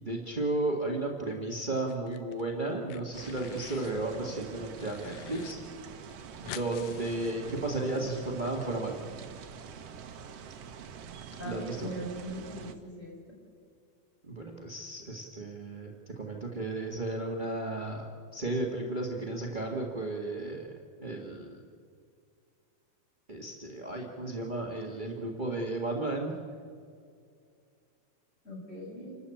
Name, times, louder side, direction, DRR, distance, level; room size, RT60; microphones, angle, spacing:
voice 1, 0.0-5.6 6.4-9.0 11.4-11.9 14.2-18.1 18.3-20.7 21.0-21.6 23.3-26.3, right 2 dB, 30° right, 1 dB, 0.9 m, -34 dB
sound 1, 1.7-2.4 2.7-4.0 4.4-5.5 5.8-5.9 6.1-8.0, left 10 dB, 80° left, 2.8 m, -47 dB
sound 2, 3.1-12.7, right 7 dB, 65° right, 1.5 m, -46 dB
voice 2, 11.4-13.4 28.4-29.2, right 1 dB, 20° left, -2 dB, 6.3 m, -41 dB
29.0 x 13.0 x 8.6 m, 2.2 s
omnidirectional pair, 4.3 m